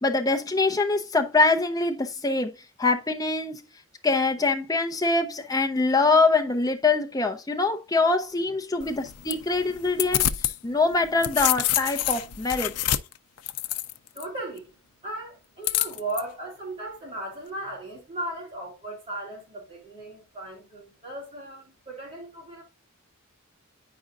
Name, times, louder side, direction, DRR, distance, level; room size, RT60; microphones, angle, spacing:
voice 1, 0.0-2.5 2.8-3.6 4.0-10.3 10.6-12.7, left 3 dB, 15° left, 0.5 m, -24 dB
sound 1, 8.8-10.6 10.9-14.2 15.6-16.2, left 12 dB, 90° left, 0.5 m, -27 dB
voice 2, 14.1-14.7 15.0-22.6, right 2 dB, 25° right, 3.2 m, -37 dB
8.5 x 5.2 x 2.4 m
head